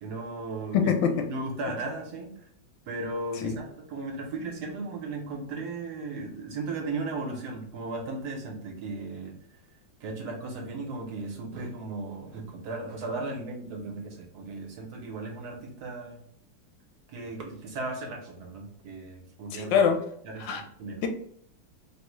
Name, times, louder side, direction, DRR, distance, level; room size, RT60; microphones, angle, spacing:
voice 1, 0.0-0.9 1.3-2.3 2.9-9.4 10.0-16.2 17.1-19.8 20.2-21.0, right 3 dB, 65° right, 0 dB, 1.1 m, -36 dB
voice 2, 0.7-1.3 3.4-3.6 19.5-20.0 20.4-20.6, left 7 dB, 80° left, 5 dB, 1.3 m, -24 dB
3.7 x 2.0 x 3.0 m, 0.67 s
omnidirectional pair, 2.0 m